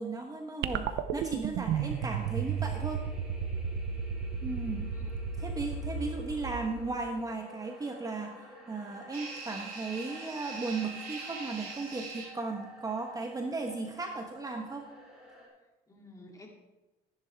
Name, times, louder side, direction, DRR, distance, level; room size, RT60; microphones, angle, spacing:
voice 1, 0.0-3.0 4.4-4.9 5.4-14.9, right 3 dB, 20° right, 3 dB, 1.1 m, -36 dB
sound 1, 0.6-7.1, right 7 dB, 90° right, 0.7 m, -34 dB
sound 2, 1.7-15.5, equal, 5° right, 4.4 m, -51 dB
sound 3, 9.1-12.2, right 4 dB, 60° right, 4.4 m, -42 dB
voice 2, 15.6-16.5, left 2 dB, 20° left, 0 dB, 2.6 m, -53 dB
14.0 x 10.5 x 3.5 m, 1.0 s
cardioid pair, 110°, 17 cm